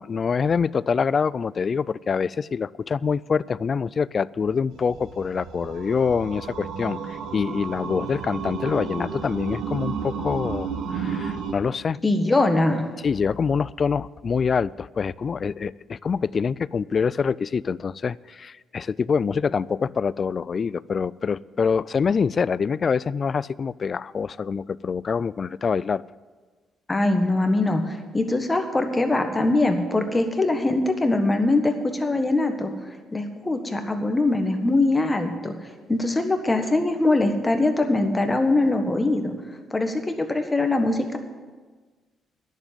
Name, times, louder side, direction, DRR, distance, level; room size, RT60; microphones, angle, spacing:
voice 1, 0.0-12.0 13.0-26.0, left 6 dB, 45° left, 20 dB, 0.3 m, -25 dB
sound 1, 4.7-11.5, right 6 dB, 80° right, 1.3 m, -32 dB
voice 2, 12.0-12.9 26.9-32.7 33.1-35.5 35.9-39.3 39.7-41.2, left 2 dB, 20° left, 6 dB, 1.5 m, -22 dB
10.5 x 7.3 x 9.1 m, 1.4 s
cardioid pair, 90°, 0 cm